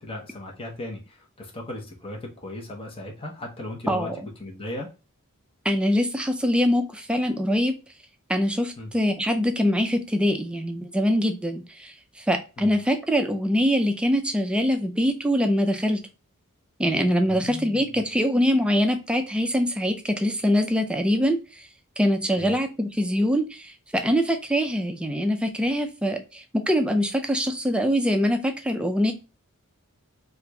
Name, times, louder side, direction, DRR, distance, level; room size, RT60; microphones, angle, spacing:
voice 1, 0.0-4.1 4.4-4.9 8.8-8.9 12.6-12.7 17.3-18.0 22.4-22.5, left 1 dB, 25° left, 0.8 m, -37 dB
voice 2, 5.6-7.7 8.3-16.0 16.8-21.6 22.0-29.1, equal, 5° right, 0.4 m, -23 dB
2.9 x 2.5 x 3.3 m
head